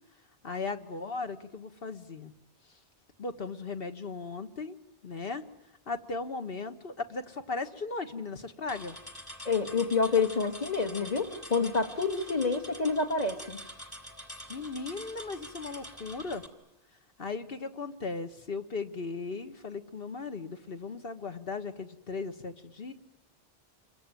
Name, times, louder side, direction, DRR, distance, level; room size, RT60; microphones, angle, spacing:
voice 1, 0.4-2.3 3.2-4.7 5.0-5.4 5.9-9.0 14.5-16.4 17.2-22.9, left 4 dB, 55° left, 8 dB, 1.7 m, -37 dB
sound 1, 8.7-16.5, equal, 20° left, 2.9 m, -46 dB
voice 2, 9.4-13.6, left 4 dB, 35° left, 4 dB, 2.3 m, -28 dB
28.5 x 23.0 x 9.1 m, 0.83 s
omnidirectional pair, 1.2 m